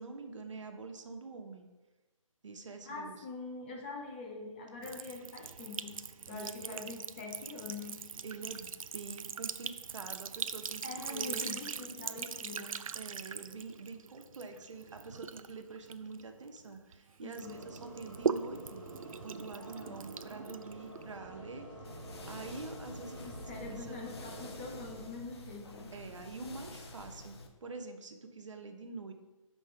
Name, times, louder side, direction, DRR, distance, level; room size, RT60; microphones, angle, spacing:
voice 1, 0.0-1.7 2.4-3.2 6.3-6.8 8.2-12.1 12.9-18.9 19.2-24.1 25.9-29.1, right 3 dB, 65° right, 5 dB, 1.0 m, -46 dB
voice 2, 2.8-8.1 10.8-13.0 17.2-17.7 19.6-20.0 23.2-25.9, left 3 dB, 20° left, 0 dB, 0.8 m, -45 dB
Sink (filling or washing) / Trickle dribble, 4.8-16.9 17.3-21.2, right 6 dB, 80° right, 0.4 m, -41 dB
sound 1, 17.4-25.1, right 1 dB, 10° right, 0.9 m, -49 dB
sound 2, 21.8-27.5, left 2 dB, 50° left, 0.9 m, -48 dB
5.7 x 5.2 x 5.1 m, 1.1 s
hypercardioid pair, 165°, 17 cm